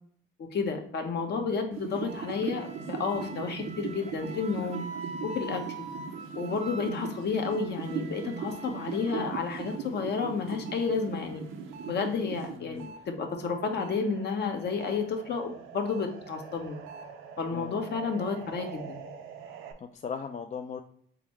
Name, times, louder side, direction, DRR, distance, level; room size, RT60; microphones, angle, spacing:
voice 1, 0.5-4.8 5.2-5.8 6.4-11.4 11.9-16.8 17.4-19.0, left 5 dB, 55° left, 4 dB, 0.9 m, -31 dB
sound 1, 1.7-13.0 13.4-19.7, right 6 dB, 90° right, 0.6 m, -40 dB
Wind instrument woodwind instrument, 2.2-9.3, right 2 dB, 35° right, 0.5 m, -44 dB
voice 2, 17.5-17.8 19.8-20.8, left 6 dB, 40° left, 6 dB, 0.4 m, -38 dB
3.8 x 3.4 x 3.0 m, 0.62 s
cardioid pair, 90°, 20 cm